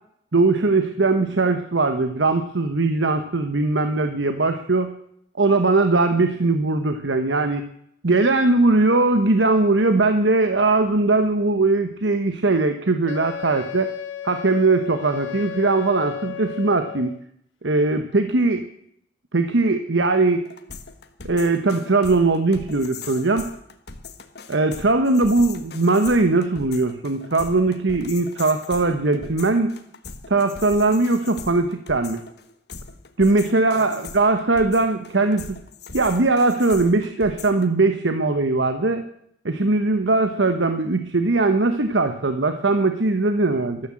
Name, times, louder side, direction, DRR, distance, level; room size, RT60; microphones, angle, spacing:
voice 1, 0.3-4.9 5.4-7.7 8.0-13.9 14.2-17.1 17.6-18.7 19.3-20.4 21.2-23.5 24.5-29.7 30.3-32.2 33.2-35.6 35.9-39.0 39.4-43.8, right 3 dB, 75° right, 8 dB, 1.1 m, -20 dB
Wind instrument woodwind instrument, 13.1-17.2, left 9 dB, 85° left, 0.8 m, -34 dB
sound 1, 20.4-37.7, left 5 dB, 55° left, 1.4 m, -40 dB
13.5 x 13.0 x 7.6 m, 0.71 s
head